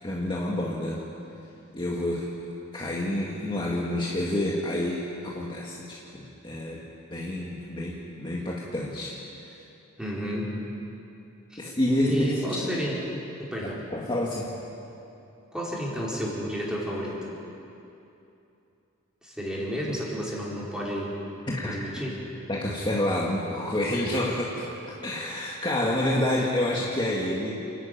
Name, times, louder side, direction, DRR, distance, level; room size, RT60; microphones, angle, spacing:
voice 1, 0.0-1.0 1.7-2.3 2.7-6.8 7.1-9.2 11.6-12.4 13.9-14.5 21.5-21.8 22.5-24.7 25.0-27.6, left 1 dB, 25° left, -4 dB, 1.8 m, -28 dB
voice 2, 10.0-10.5 11.5-11.6 12.1-13.0 13.4-13.8 15.5-17.3 19.2-21.2 21.7-22.3, equal, 5° right, -5 dB, 4.2 m, -31 dB
28.5 x 11.5 x 9.1 m, 2.8 s
head